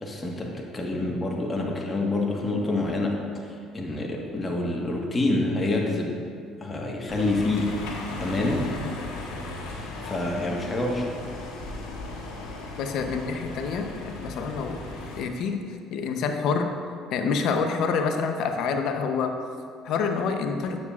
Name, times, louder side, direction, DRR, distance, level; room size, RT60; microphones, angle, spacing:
voice 1, 0.0-3.2 3.7-6.2 6.6-7.7 8.2-8.6 10.0-11.1, left 2 dB, 25° left, -1 dB, 1.4 m, -27 dB
sound 1, 7.1-15.2, left 2 dB, 90° left, 1.2 m, -37 dB
voice 2, 12.8-14.8 15.2-15.6 15.9-16.7 17.1-19.3 19.8-20.8, left 5 dB, 70° left, 5 dB, 0.7 m, -27 dB
9.6 x 7.4 x 2.4 m, 2.2 s
supercardioid pair, 85°, 0 cm